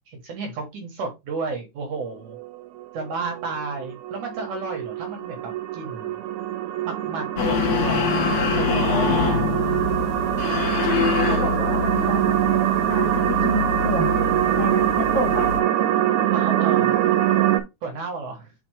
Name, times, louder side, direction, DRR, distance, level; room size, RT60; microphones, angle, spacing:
voice 1, 0.1-2.4 2.9-5.4 5.7-6.2 6.8-8.9 16.3-16.9 17.8-18.5, right 4 dB, 60° right, 2 dB, 2.6 m, -32 dB
sound 1, 2.3-17.6, right 12 dB, 85° right, 3.0 m, -24 dB
sound 2, 7.4-15.6, left 5 dB, 60° left, 2.3 m, -25 dB
voice 2, 8.7-9.3 11.0-12.4 12.9-14.2 14.6-15.5, left 2 dB, 45° left, 2 dB, 2.7 m, -29 dB
7.0 x 5.1 x 3.4 m, 0.22 s
omnidirectional pair, 4.5 m